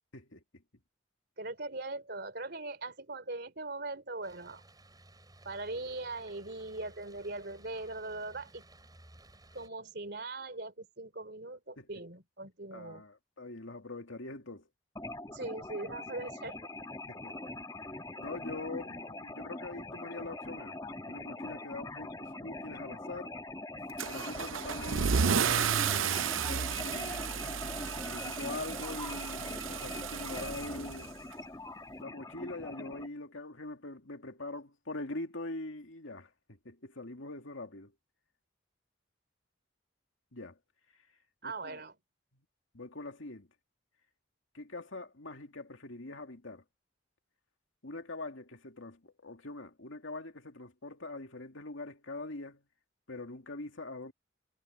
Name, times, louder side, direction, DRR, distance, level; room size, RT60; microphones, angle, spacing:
voice 1, 0.1-0.4 11.8-11.9 12.7-14.7 17.1-17.5 18.2-20.8 21.1-23.3 24.1-27.3 28.1-31.1 32.0-37.9 40.3-40.6 41.4-41.8 42.7-43.5 44.5-46.6 47.8-52.6 53.1-54.1, left 2 dB, 80° left, 2.5 m, -43 dB
voice 2, 1.4-4.6 5.4-8.6 9.5-13.0 15.3-16.6 41.4-41.9, right 2 dB, 55° right, 3.2 m, -40 dB
sound 1, 4.2-9.7, right 1 dB, 20° right, 8.0 m, -58 dB
sound 2, 15.0-33.1, left 2 dB, 20° left, 1.5 m, -42 dB
Car / Engine starting / Accelerating revving vroom, 24.0-31.3, right 7 dB, 85° right, 0.6 m, -32 dB
head